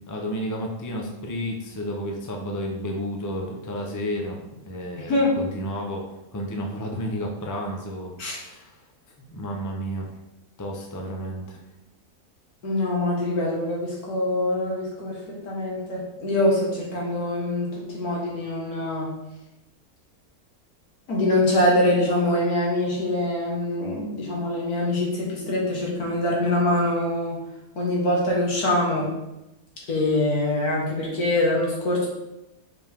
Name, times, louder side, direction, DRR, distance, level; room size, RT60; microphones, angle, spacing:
voice 1, 0.1-6.1 6.3-8.8 9.2-10.1 10.6-11.6, equal, 20° left, 1 dB, 0.6 m, -31 dB
voice 2, 5.0-5.4 8.2-8.4 12.6-19.1 21.1-27.4 27.8-29.1 29.9-32.1, left 1 dB, 85° left, -3 dB, 2.1 m, -24 dB
5.2 x 5.0 x 3.6 m, 0.93 s
omnidirectional pair, 1.5 m